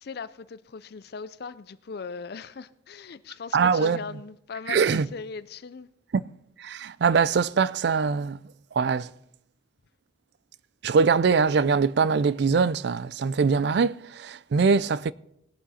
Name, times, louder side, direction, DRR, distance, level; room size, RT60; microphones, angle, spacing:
voice 1, 0.0-5.9, left 5 dB, 50° left, 0.4 m, -39 dB
voice 2, 3.5-4.0 4.7-5.1 6.1-6.2 6.6-8.4 8.8-9.1 10.8-15.1, right 5 dB, 55° right, 0.3 m, -22 dB
19.0 x 8.5 x 4.2 m
head